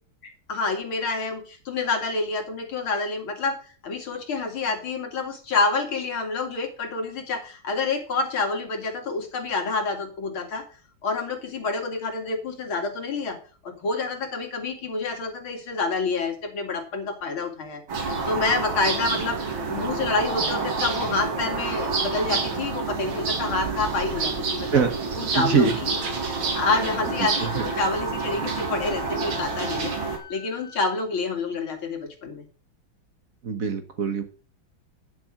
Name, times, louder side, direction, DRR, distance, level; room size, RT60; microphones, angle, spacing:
voice 1, 0.2-3.6 3.8-10.6 11.0-13.4 13.6-17.8 18.3-19.4 19.7-24.8 25.1-26.0 26.6-32.4, left 3 dB, 90° left, 3 dB, 3.2 m, -28 dB
sound 1, 17.9-30.2, right 4 dB, 85° right, 2.8 m, -28 dB
voice 2, 25.4-25.8 27.4-27.6 33.4-34.2, right 6 dB, 50° right, 8 dB, 1.4 m, -23 dB
Wind instrument woodwind instrument, 26.6-30.8, left 10 dB, 15° right, 5.8 m, -44 dB
10.5 x 6.9 x 6.3 m, 0.38 s
omnidirectional pair, 2.2 m